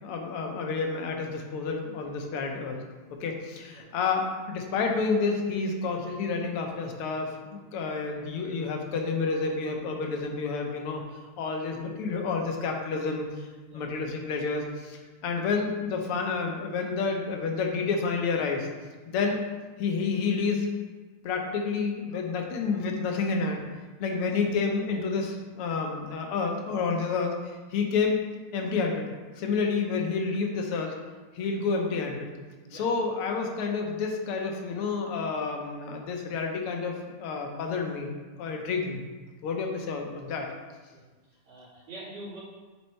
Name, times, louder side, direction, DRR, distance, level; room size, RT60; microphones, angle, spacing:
voice 1, 0.0-2.8 3.2-11.0 11.4-13.5 13.7-18.7 19.1-19.4 19.8-20.7 21.2-23.6 24.0-28.2 28.5-29.1 29.4-31.0 31.3-32.3 32.7-39.1 39.4-40.5, left 4 dB, 85° left, 2 dB, 1.8 m, -29 dB
voice 2, 41.3-42.4, right 1 dB, 90° right, -9 dB, 3.3 m, -45 dB
8.3 x 4.4 x 3.2 m, 1.3 s
omnidirectional pair, 2.4 m